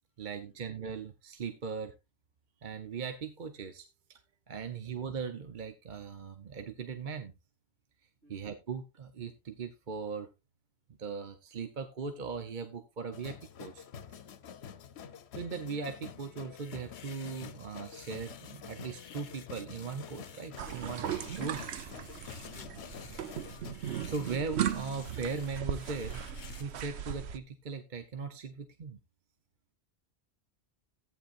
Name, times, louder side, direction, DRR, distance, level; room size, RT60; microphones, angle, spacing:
voice 1, 0.2-2.0 2.6-4.2 4.5-7.3 8.3-10.3 11.0-13.8 15.3-21.0 21.3-21.6 24.0-29.0, right 5 dB, 50° right, 1.0 m, -39 dB
voice 2, 4.6-5.0 8.2-8.5 14.6-14.9 22.3-23.2, right 2 dB, 70° right, 7.5 m, -65 dB
sound 1, 13.1-23.7, left 8 dB, 80° left, 1.0 m, -48 dB
sound 2, 16.6-26.6, left 8 dB, 55° left, 0.7 m, -53 dB
sound 3, 20.6-27.4, right 9 dB, 85° right, 1.0 m, -37 dB
14.5 x 9.3 x 2.5 m
omnidirectional pair, 1.1 m